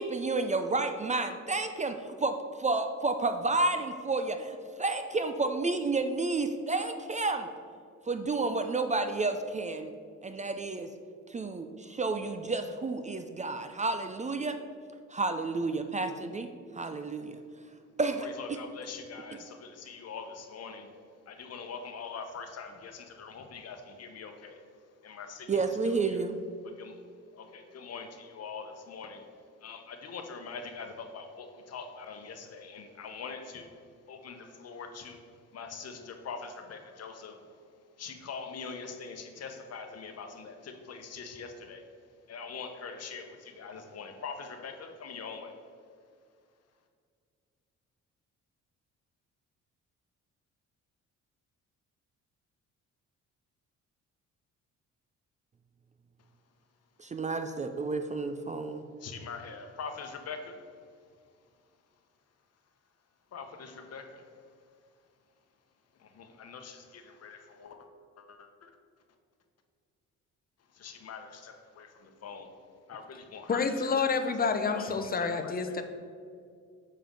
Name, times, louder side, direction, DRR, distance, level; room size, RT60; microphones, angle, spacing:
voice 1, 0.0-7.5 8.0-9.9 10.2-10.9 11.3-14.6 15.1-17.4 18.0-18.6 19.3-19.4 25.5-26.4 57.0-58.8, right 3 dB, 25° right, 7 dB, 0.4 m, -31 dB
voice 2, 18.2-20.9 21.3-24.6 25.0-26.2 26.6-27.0 27.3-29.3 29.6-33.7 34.1-37.5 38.0-41.9 42.3-45.5 59.0-60.6 63.3-64.3 66.0-67.9 68.2-68.7 70.7-72.5 72.9-73.9 74.8-75.8, left 5 dB, 55° left, 5 dB, 1.0 m, -43 dB
voice 3, 73.5-75.8, left 5 dB, 30° left, 7 dB, 0.7 m, -28 dB
7.3 x 4.5 x 5.1 m, 2.2 s
cardioid pair, 90°, 30 cm